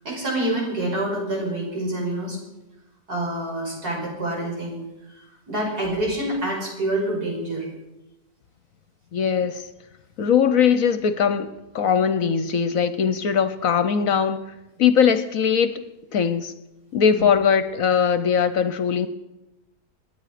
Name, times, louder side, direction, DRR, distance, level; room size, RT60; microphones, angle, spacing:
voice 1, 0.0-2.4 3.1-4.8 5.5-7.7 17.1-17.2, right 1 dB, 70° right, -3 dB, 6.2 m, -27 dB
voice 2, 9.1-9.7 10.2-14.4 14.8-15.7 16.1-16.5 16.9-19.1, left 7 dB, 65° left, 12 dB, 1.1 m, -20 dB
28.0 x 10.0 x 5.0 m, 0.98 s
omnidirectional pair, 1.7 m